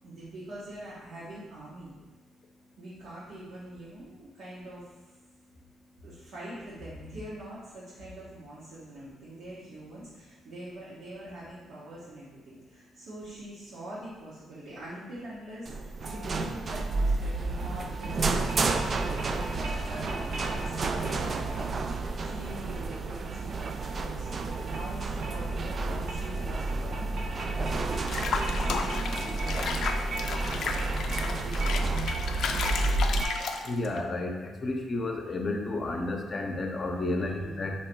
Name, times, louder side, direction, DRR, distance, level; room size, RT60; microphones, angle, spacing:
voice 1, 0.0-2.0 2.8-4.9 6.0-24.3 24.6-27.1 27.5-29.6 30.6-31.1 31.4-32.0 32.4-32.6 37.0-37.7, right 1 dB, 80° right, -10 dB, 1.3 m, -44 dB
sound 1, 15.7-33.2, right 3 dB, 40° right, 0.3 m, -30 dB
sound 2, 16.0-33.9, right 2 dB, 60° right, 0.8 m, -42 dB
Water / Bathtub (filling or washing), 28.1-34.0, left 5 dB, 70° left, 0.4 m, -33 dB
voice 2, 33.6-37.7, left 2 dB, 40° left, 3 dB, 0.7 m, -31 dB
3.9 x 3.0 x 4.5 m, 1.2 s
cardioid pair, 90°, 0 cm